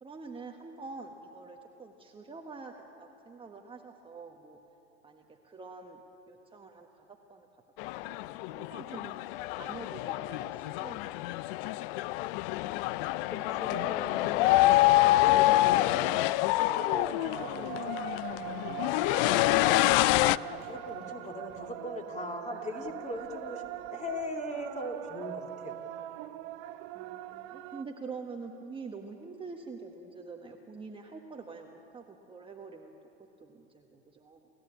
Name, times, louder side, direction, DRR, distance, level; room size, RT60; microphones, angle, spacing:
voice 1, 0.0-4.6 5.0-6.0 6.3-7.5 8.0-9.2 9.5-11.4 11.7-11.9 26.9-32.9 33.4-34.5, right 4 dB, 15° right, 2 dB, 1.3 m, -46 dB
sound 1, 7.8-20.4, left 17 dB, 50° left, 0.5 m, -27 dB
voice 2, 13.3-16.2 16.6-19.7 20.2-25.8, left 1 dB, 20° left, 3 dB, 2.7 m, -40 dB
sound 2, 16.8-27.8, right 14 dB, 50° right, 1.1 m, -42 dB
29.0 x 14.5 x 8.8 m, 3.0 s
hypercardioid pair, 105°, 37 cm